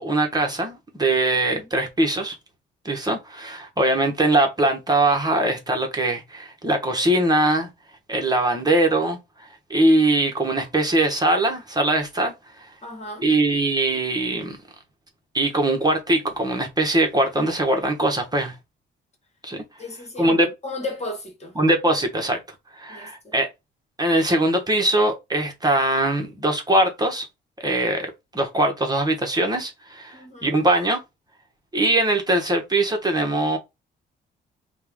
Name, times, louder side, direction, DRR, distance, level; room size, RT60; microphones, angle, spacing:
voice 1, 0.0-2.4 2.8-7.7 8.1-12.3 13.2-14.6 15.3-18.5 19.4-19.6 20.2-20.5 21.6-22.4 22.7-23.5 24.0-27.3 27.6-31.0 31.7-33.6, right 1 dB, 20° right, 1.2 m, -21 dB
voice 2, 12.8-13.3 19.8-21.6 22.9-23.3 30.1-30.6, left 2 dB, 35° left, 1.6 m, -35 dB
4.3 x 2.5 x 3.6 m
cardioid pair, 90°, 20 cm